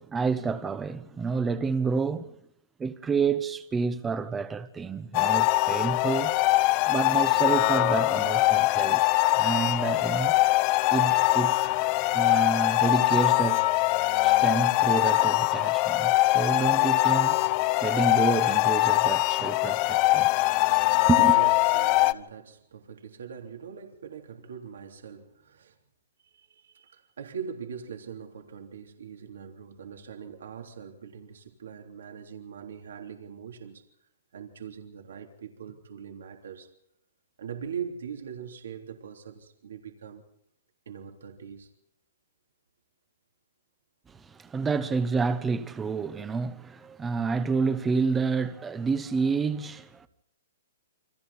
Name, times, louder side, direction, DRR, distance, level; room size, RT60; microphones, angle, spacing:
voice 1, 0.0-2.4 2.8-6.4 6.9-9.0 9.4-10.4 10.9-13.7 14.2-17.4 17.8-20.3 21.1-21.4 44.1-50.1, right 5 dB, 10° right, 0.8 m, -29 dB
sound 1, 5.1-22.1, left 20 dB, 30° left, 0.9 m, -23 dB
voice 2, 21.0-25.8 26.2-33.9 34.3-36.7 37.4-40.2 40.9-41.7 44.8-44.9, right 7 dB, 80° right, 3.4 m, -42 dB
29.0 x 25.5 x 4.2 m
hypercardioid pair, 170°, 0 cm